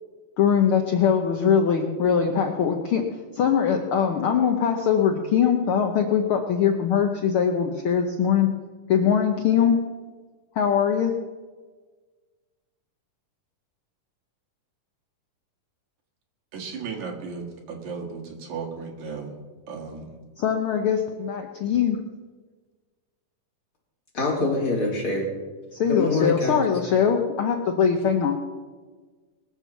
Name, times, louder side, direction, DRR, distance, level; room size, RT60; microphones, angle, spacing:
voice 1, 0.4-3.0 3.3-8.5 8.9-9.8 10.6-11.1 20.4-22.0 25.8-28.4, left 7 dB, 75° left, 4 dB, 1.2 m, -22 dB
voice 2, 16.5-19.3 19.7-20.2, right 5 dB, 65° right, 1 dB, 3.2 m, -35 dB
voice 3, 24.1-25.3 25.9-26.6, left 2 dB, 40° left, -3 dB, 4.0 m, -24 dB
21.0 x 7.2 x 7.1 m, 1.4 s
omnidirectional pair, 3.7 m